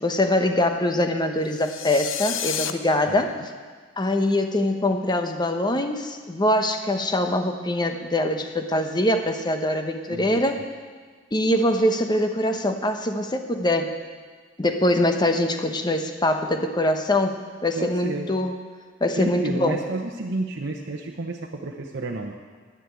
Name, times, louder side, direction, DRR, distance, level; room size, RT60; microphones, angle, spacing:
voice 1, 0.0-3.3 4.0-10.6 11.3-13.9 14.6-18.5 19.0-19.8, left 1 dB, 20° left, 6 dB, 0.9 m, -23 dB
sound 1, 1.5-2.7, left 9 dB, 75° left, 0.7 m, -30 dB
voice 2, 10.1-10.4 17.8-18.3 19.2-22.4, right 2 dB, 60° right, 0 dB, 0.9 m, -31 dB
11.0 x 10.0 x 8.3 m, 1.5 s
head